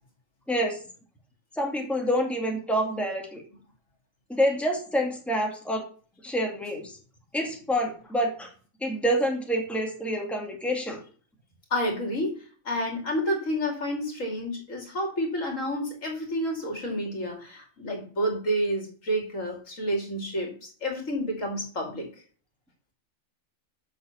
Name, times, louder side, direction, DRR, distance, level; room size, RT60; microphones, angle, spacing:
voice 1, 0.5-0.8 1.5-3.4 4.3-5.9 6.2-7.0 7.3-8.5 8.8-11.0, equal, ahead, 0 dB, 2.3 m, -27 dB
voice 2, 11.7-12.4 12.6-20.5 20.8-22.1, equal, 70° left, 1 dB, 2.9 m, -29 dB
7.9 x 6.1 x 7.1 m, 0.42 s
omnidirectional pair, 1.4 m